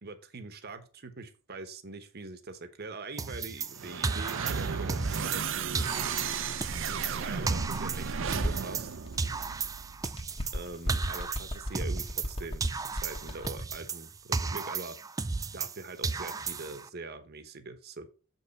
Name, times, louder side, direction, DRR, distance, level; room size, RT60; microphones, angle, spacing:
voice 1, 0.0-5.8 6.9-8.9 10.5-15.0 15.5-18.1, right 3 dB, 50° right, 9 dB, 1.0 m, -43 dB
sound 1, 3.2-5.5 5.8-8.9 9.2-12.4 12.6-15.8 16.0-16.9, right 4 dB, 15° right, 0.3 m, -34 dB
sound 2, 3.7-10.0, right 6 dB, 65° right, 0.6 m, -34 dB
Bird, 6.0-9.6 10.0-13.8, left 1 dB, 25° left, 1.2 m, -39 dB
7.3 x 5.5 x 4.1 m, 0.37 s
head